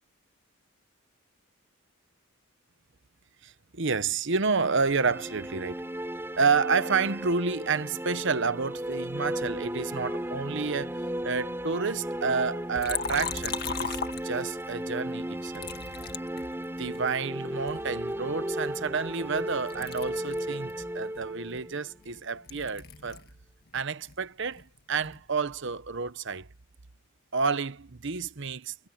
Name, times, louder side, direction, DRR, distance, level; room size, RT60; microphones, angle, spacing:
voice 1, 3.4-5.8 6.4-11.0 11.2-14.0 14.2-15.7 16.8-23.2 23.7-26.5 27.3-28.9, right 5 dB, 55° right, 1.0 m, -29 dB
sound 1, 4.7-22.5, right 1 dB, 10° right, 4.7 m, -36 dB
Liquid, 12.8-14.7 15.5-17.1 17.7-19.4 19.7-23.4 23.7-25.3, left 6 dB, 45° left, 1.7 m, -38 dB
head